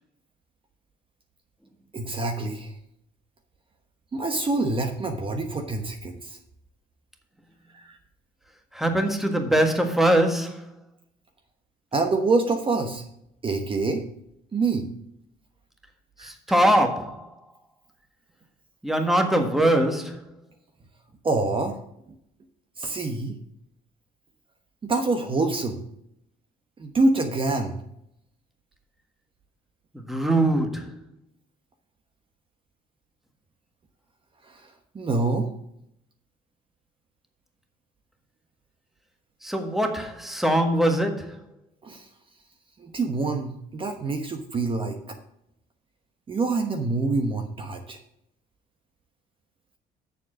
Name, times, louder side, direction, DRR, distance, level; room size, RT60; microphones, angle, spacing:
voice 1, 1.9-2.7 4.1-6.4 7.7-8.0 11.9-13.0 13.4-14.0 14.5-14.9 16.2-16.3 21.2-21.8 22.8-23.4 24.8-25.8 26.8-27.8 34.4-35.5 41.8-42.1 42.8-45.2 46.3-48.0, right 3 dB, 30° right, 1.1 m, -26 dB
voice 2, 8.7-10.7 16.2-17.3 18.8-20.2 29.9-31.0 39.4-41.4, right 1 dB, ahead, 1.5 m, -22 dB
7.1 x 7.0 x 6.2 m
cardioid pair, 110°, 17 cm